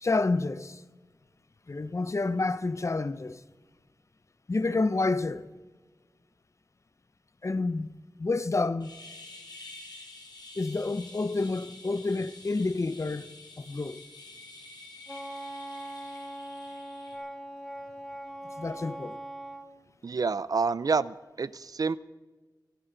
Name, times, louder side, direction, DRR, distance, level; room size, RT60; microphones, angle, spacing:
voice 1, 0.0-0.8 1.7-3.4 4.5-5.4 7.4-7.9 8.2-8.9 10.6-13.3 13.6-14.0 18.6-19.2, left 3 dB, 45° left, 0.7 m, -29 dB
sound 1, 8.8-17.2, left 2 dB, 70° left, 3.1 m, -48 dB
Wind instrument woodwind instrument, 15.1-19.7, right 1 dB, 5° left, 1.2 m, -41 dB
voice 2, 20.0-22.0, right 4 dB, 55° right, 0.4 m, -28 dB
24.5 x 12.0 x 3.9 m
wide cardioid pair, 65°, 7 cm